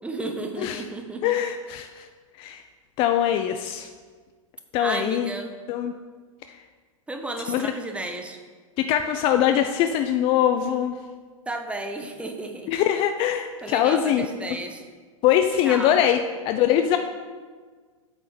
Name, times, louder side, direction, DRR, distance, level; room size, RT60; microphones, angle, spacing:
voice 1, 0.0-1.4 4.8-5.5 7.1-8.4 11.5-12.7 13.6-14.8 15.6-16.1, right 2 dB, 5° right, 5 dB, 0.8 m, -33 dB
voice 2, 1.2-2.1 2.4-2.6 3.0-3.9 4.7-5.3 5.7-5.9 7.5-7.7 8.8-10.9 12.7-14.3 15.2-16.2 16.5-17.0, left 10 dB, 30° left, 7 dB, 0.4 m, -22 dB
8.5 x 3.9 x 6.4 m, 1.5 s
figure-of-eight pair, 95°, 18 cm